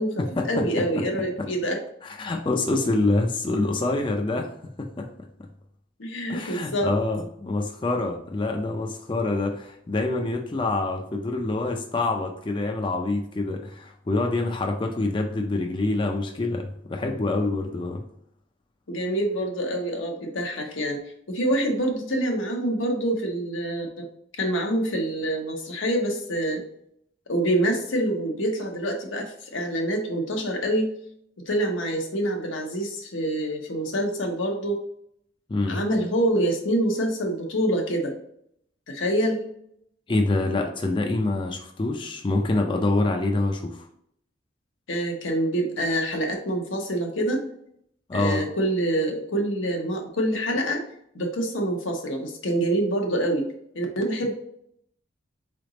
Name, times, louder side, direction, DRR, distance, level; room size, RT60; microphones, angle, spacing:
voice 1, 0.0-1.8 6.0-6.9 18.9-23.9 24.3-26.6 27.3-30.9 31.5-34.8 35.7-38.1 38.9-39.5 44.9-47.4 48.1-50.8 51.1-53.5 53.7-54.3, right 1 dB, 85° left, 2 dB, 1.0 m, -26 dB
voice 2, 2.0-4.5 4.8-5.1 6.3-18.0 35.5-35.8 40.1-43.9 48.1-48.4, left 2 dB, 25° left, 3 dB, 0.4 m, -26 dB
3.9 x 3.4 x 3.9 m, 0.71 s
head